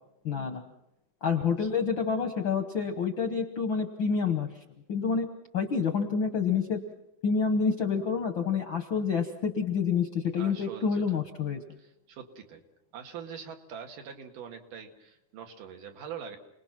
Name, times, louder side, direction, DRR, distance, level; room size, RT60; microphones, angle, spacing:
voice 1, 0.2-0.6 1.2-4.5 4.9-5.3 5.5-6.8 7.2-11.6, left 5 dB, 60° left, 6 dB, 1.3 m, -28 dB
voice 2, 10.4-11.2 11.8-12.6 12.9-16.4, right 7 dB, 80° right, 4 dB, 3.5 m, -43 dB
29.0 x 20.0 x 6.0 m, 0.84 s
omnidirectional pair, 3.7 m